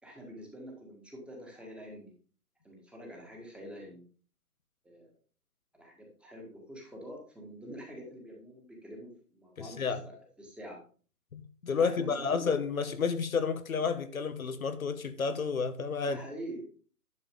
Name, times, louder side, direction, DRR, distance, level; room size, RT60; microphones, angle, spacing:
voice 1, 0.0-2.1 2.6-4.0 4.8-5.1 5.7-10.8 11.8-12.6 16.1-16.6, equal, ahead, 1.7 m, -46 dB
voice 2, 9.6-10.0 11.3-16.2, left 5 dB, 60° left, 1.1 m, -31 dB
11.0 x 7.1 x 3.6 m
figure-of-eight pair, 135°, 46 cm